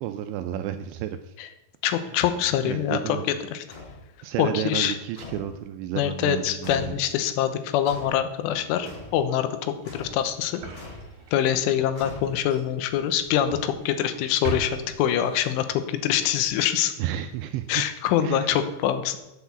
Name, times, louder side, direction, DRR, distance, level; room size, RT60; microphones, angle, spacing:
voice 1, 0.0-1.3 2.0-2.2 2.6-3.2 4.2-7.0 17.0-17.7 18.2-18.6, right 11 dB, 85° right, 8 dB, 2.6 m, -31 dB
voice 2, 1.8-3.7 4.4-4.9 6.0-10.6 11.3-16.9 17.7-19.2, left 10 dB, 80° left, 10 dB, 3.3 m, -25 dB
sound 1, 3.7-4.0 5.2-5.6 6.6-7.0 7.8-8.2 8.8-9.2 9.8-10.2 10.7-11.1 12.0-12.6, left 3 dB, 40° left, 4.8 m, -41 dB
sound 2, 8.3-15.8, right 4 dB, 45° right, 3.0 m, -41 dB
8.5 x 8.3 x 7.0 m, 0.94 s
omnidirectional pair, 5.6 m